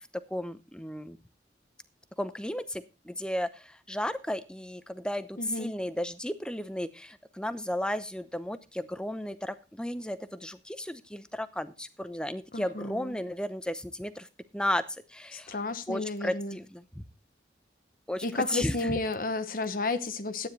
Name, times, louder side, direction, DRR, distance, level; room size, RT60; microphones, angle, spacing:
voice 1, 0.3-1.2 2.2-14.3 14.5-14.8 15.1-15.6 15.9-17.0 18.1-19.0, left 1 dB, 5° left, 0.7 m, -34 dB
voice 2, 5.4-5.7 12.5-13.1 15.3-16.6 18.2-20.5, left 3 dB, 50° left, 1.0 m, -32 dB
12.5 x 9.7 x 4.0 m
head